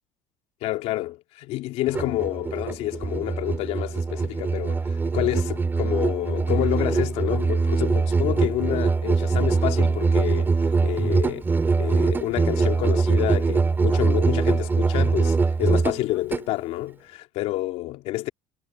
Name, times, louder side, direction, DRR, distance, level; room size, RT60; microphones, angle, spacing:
voice 1, 0.6-11.5 11.8-18.3, left 16 dB, 60° left, 3.3 m, -28 dB
Musical instrument, 1.9-16.5, right 4 dB, 15° right, 4.2 m, -23 dB
cardioid pair, 150°, 12 cm